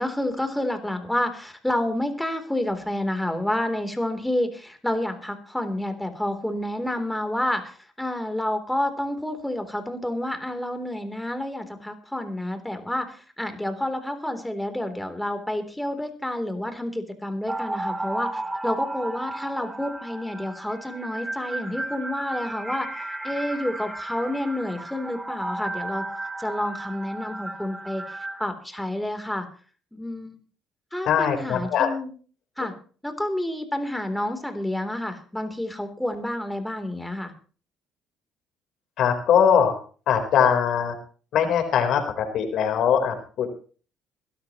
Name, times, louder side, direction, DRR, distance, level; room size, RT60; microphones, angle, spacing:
voice 1, 0.0-22.9 23.2-26.1 26.4-29.5 29.9-30.4 30.9-32.1 32.6-32.7 33.0-37.3, left 1 dB, 5° left, 7 dB, 3.5 m, -29 dB
sound 1, 17.5-28.4, right 2 dB, 15° right, 2.7 m, -34 dB
voice 2, 31.1-31.9 39.0-39.7 40.1-40.9 41.3-42.0 42.3-43.5, left 8 dB, 70° left, 6 dB, 4.1 m, -21 dB
22.0 x 13.0 x 3.1 m, 0.39 s
supercardioid pair, 75°, 0 cm